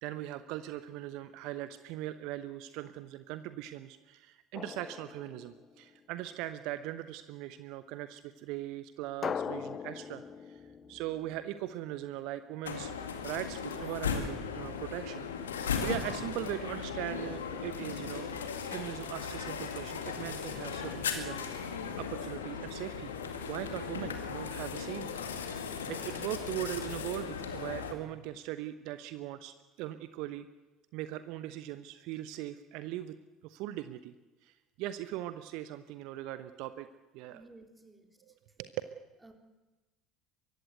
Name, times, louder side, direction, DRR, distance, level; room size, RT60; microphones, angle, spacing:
voice 1, 0.0-10.6 10.9-15.3 15.8-18.3 18.7-23.1 23.5-25.1 25.4-25.5 25.9-30.5 30.9-33.1 33.4-34.1 34.4-36.9 37.1-37.4 38.3-38.4 38.6-38.7, right 14 dB, 60° right, 12 dB, 0.9 m, -40 dB
Drum, 4.5-6.1 9.2-11.9, left 6 dB, 35° left, 0.8 m, -41 dB
voice 2, 10.6-11.0 37.3-38.3 39.2-39.3, right 2 dB, 10° right, 6 dB, 3.7 m, -56 dB
sound 1, 12.6-27.9, left 6 dB, 80° left, 2.1 m, -37 dB
23.5 x 15.0 x 9.4 m, 1.1 s
figure-of-eight pair, 65°, 0 cm